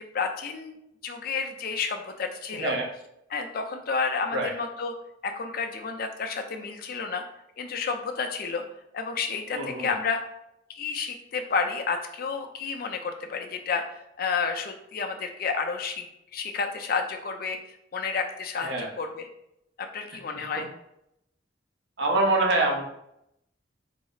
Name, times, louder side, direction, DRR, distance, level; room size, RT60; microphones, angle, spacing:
voice 1, 0.1-0.8 1.0-2.7 3.3-4.9 5.2-7.2 7.6-8.6 8.9-10.2 10.7-13.8 14.2-16.0 16.3-19.3 19.8-20.7, left 5 dB, 55° left, 5 dB, 0.5 m, -30 dB
voice 2, 2.5-2.9 4.3-4.5 9.5-9.9 18.6-18.9 20.3-20.5 22.0-22.8, right 2 dB, 70° right, 0 dB, 0.7 m, -25 dB
4.1 x 2.0 x 3.9 m, 0.80 s
head